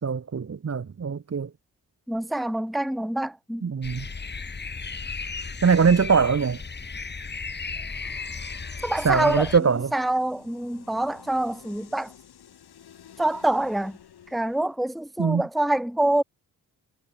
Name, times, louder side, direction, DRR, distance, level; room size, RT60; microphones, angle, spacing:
voice 1, 0.0-1.5 3.6-4.1 5.6-6.6 9.0-9.9 15.2-15.4, right 6 dB, 40° right, 1.3 m, -22 dB
voice 2, 2.1-3.7 8.8-12.1 13.2-14.0 14.3-16.2, right 1 dB, ahead, 1.1 m, -26 dB
sound 1, 3.8-9.6, left 4 dB, 25° left, 1.1 m, -35 dB
sound 2, 7.9-14.8, left 9 dB, 70° left, 2.5 m, -51 dB
supercardioid pair, 55°, 40 cm